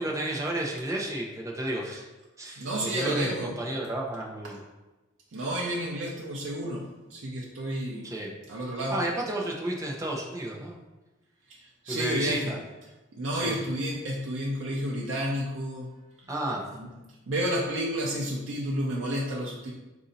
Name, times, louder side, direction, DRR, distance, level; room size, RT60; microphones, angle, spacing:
voice 1, 0.0-2.0 2.4-4.6 8.0-8.3 8.9-10.8 11.9-12.6 13.4-13.6 16.3-16.6, right 1 dB, 15° right, -1 dB, 0.6 m, -32 dB
voice 2, 2.6-3.6 4.4-4.5 5.3-8.1 8.5-9.0 11.5-12.6 13.2-15.9 16.7-16.9 17.3-19.7, right 1 dB, 85° right, -3 dB, 0.6 m, -31 dB
4.3 x 2.7 x 4.0 m, 1.1 s
head